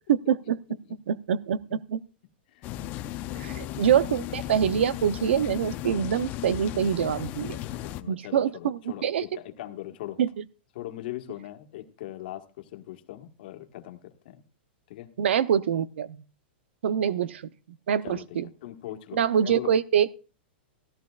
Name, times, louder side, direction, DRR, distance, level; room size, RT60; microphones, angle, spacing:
voice 1, 0.1-0.6 1.1-2.0 3.4-7.6 8.1-9.2 10.2-10.3 15.2-16.2 16.8-17.4 17.9-18.5 19.1-20.2, right 8 dB, 85° right, 0.7 m, -25 dB
voice 2, 2.5-2.9 3.2-4.1 7.7-10.2 10.7-14.4 14.9-15.1 16.9-17.0 18.0-19.7, left 14 dB, 55° left, 1.5 m, -41 dB
sound 1, 2.6-8.0, left 13 dB, 30° left, 0.6 m, -36 dB
16.0 x 14.0 x 2.4 m
supercardioid pair, 160°, 6 cm